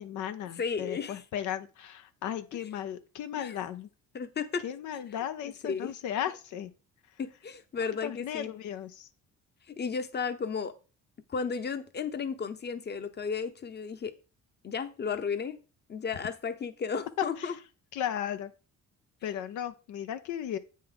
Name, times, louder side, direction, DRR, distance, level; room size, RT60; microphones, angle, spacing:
voice 1, 0.0-3.9 4.6-6.7 7.1-7.2 8.0-9.1 17.2-17.6 17.9-18.5 19.2-20.6, left 10 dB, 80° left, 0.6 m, -35 dB
voice 2, 0.6-1.2 3.4-3.5 4.1-4.6 5.4-5.9 7.2-8.5 9.7-10.7 11.3-14.1 14.6-15.6 15.9-17.5, left 6 dB, 35° left, 0.8 m, -34 dB
7.9 x 5.3 x 3.8 m
cardioid pair, 90°, 30 cm